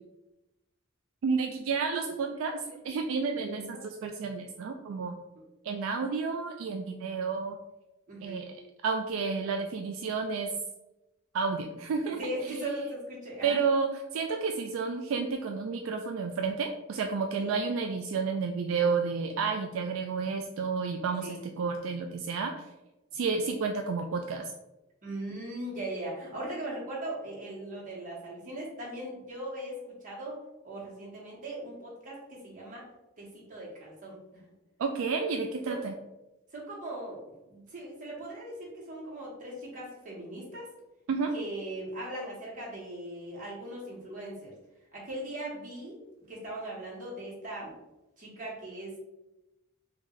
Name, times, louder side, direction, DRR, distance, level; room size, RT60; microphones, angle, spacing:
voice 1, 1.2-5.2 5.6-7.6 8.2-8.6 8.8-10.5 11.3-12.2 12.5-12.6 13.4-22.7 23.1-24.5 34.8-35.9 41.1-41.3, right 5 dB, 70° right, 4 dB, 0.3 m, -31 dB
voice 2, 8.1-8.4 12.2-13.6 17.4-17.5 21.2-21.4 25.0-30.4 30.6-32.8 33.2-34.4 35.7-35.8 36.5-37.2 37.5-40.7 41.3-44.5 44.9-46.0 46.3-47.7 48.2-49.0, right 1 dB, 40° right, -5 dB, 1.3 m, -39 dB
3.1 x 2.6 x 3.8 m, 0.99 s
head